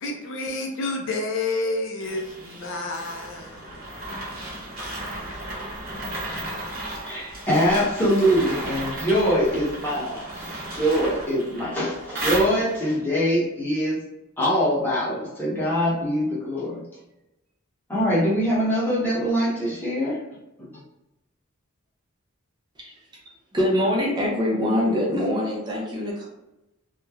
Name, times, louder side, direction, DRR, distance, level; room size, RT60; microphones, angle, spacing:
voice 1, 0.0-3.7, left 2 dB, 60° left, 1 dB, 0.4 m, -29 dB
sound 1, 2.0-13.0, right 1 dB, 45° right, 0.8 m, -34 dB
voice 2, 7.0-14.0 14.4-16.8 17.9-20.2 20.6-20.8, equal, 10° left, -7 dB, 0.9 m, -23 dB
voice 3, 23.5-26.3, left 1 dB, 20° right, -4 dB, 0.5 m, -24 dB
3.0 x 2.1 x 2.3 m, 0.95 s
head